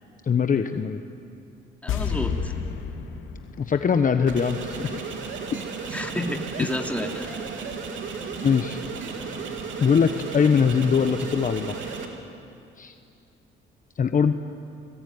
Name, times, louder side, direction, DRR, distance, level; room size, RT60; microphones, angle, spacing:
voice 1, 0.2-1.0 3.6-5.0 8.4-8.8 9.8-12.0 12.8-12.9 14.0-14.3, left 6 dB, 40° left, 8 dB, 1.2 m, -22 dB
voice 2, 1.8-2.5 5.8-7.4, left 1 dB, 5° left, 3 dB, 3.1 m, -31 dB
sound 1, 1.9-5.1 5.3-5.4, left 7 dB, 80° left, 2.6 m, -32 dB
sound 2, 4.2-12.1, right 5 dB, 75° right, 3.5 m, -34 dB
29.5 x 20.5 x 9.7 m, 2.7 s
cardioid pair, 90°, 20 cm